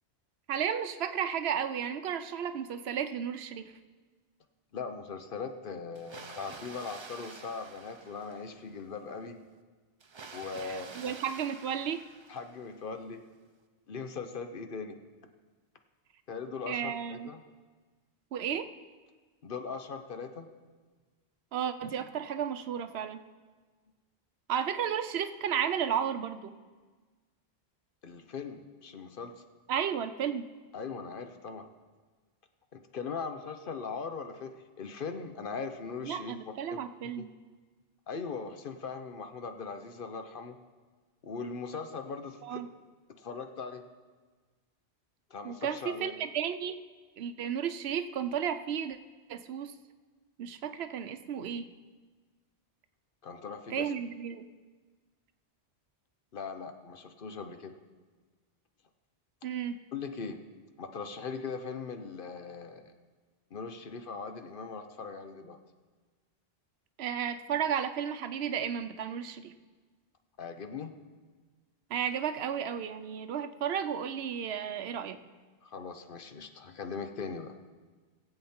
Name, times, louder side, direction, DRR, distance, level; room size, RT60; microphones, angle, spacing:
voice 1, 0.5-3.7 10.6-12.0 16.7-17.3 18.3-18.7 21.5-23.2 24.5-26.5 29.7-30.5 36.0-37.3 42.4-42.7 45.4-46.8 47.2-49.0 49.3-49.7 50.4-51.7 53.7-54.5 59.4-59.8 67.0-69.5 71.9-75.2, right 8 dB, 75° right, 10 dB, 0.9 m, -33 dB
voice 2, 4.7-9.4 10.3-11.2 12.3-13.2 13.9-15.0 16.3-17.4 19.4-20.5 28.0-29.4 30.7-31.7 32.7-36.3 36.7-36.8 37.2-37.3 38.1-40.6 41.2-42.6 43.2-43.8 45.3-46.2 53.2-53.9 56.3-57.8 59.9-60.4 60.8-62.9 63.5-65.6 70.4-70.9 75.6-77.6, left 5 dB, 60° left, 7 dB, 0.9 m, -40 dB
Water, 6.0-8.8 10.0-12.8, right 4 dB, 35° right, 0.5 m, -49 dB
18.5 x 7.9 x 4.3 m, 1.4 s
omnidirectional pair, 1.1 m